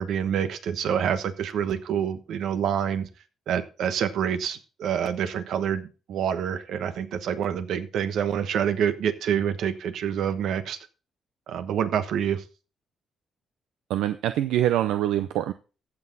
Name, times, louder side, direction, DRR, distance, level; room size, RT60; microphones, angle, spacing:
voice 1, 0.0-3.1 3.5-10.8 11.5-12.4, right 8 dB, 75° right, 10 dB, 1.2 m, -27 dB
voice 2, 13.9-15.5, right 12 dB, 90° right, 11 dB, 0.6 m, -24 dB
15.0 x 6.1 x 4.0 m, 0.34 s
cardioid pair, 90°, 0 cm